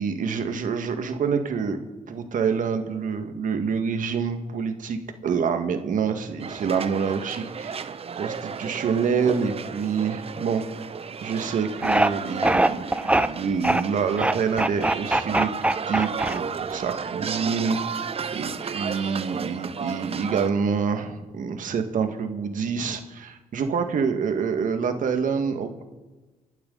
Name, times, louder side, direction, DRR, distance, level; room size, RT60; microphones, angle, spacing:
voice 1, 0.0-1.8 2.1-10.6 11.2-17.8 18.3-25.8, right 6 dB, 70° right, 6 dB, 1.9 m, -27 dB
sound 1, 6.4-20.5, right 6 dB, 45° right, 0.7 m, -33 dB
sound 2, 11.8-12.1 12.4-13.3 13.6-13.8 14.2-16.7, right 1 dB, 10° right, 0.7 m, -21 dB
30.0 x 12.0 x 4.0 m, 1.2 s
cardioid pair, 75°, 14 cm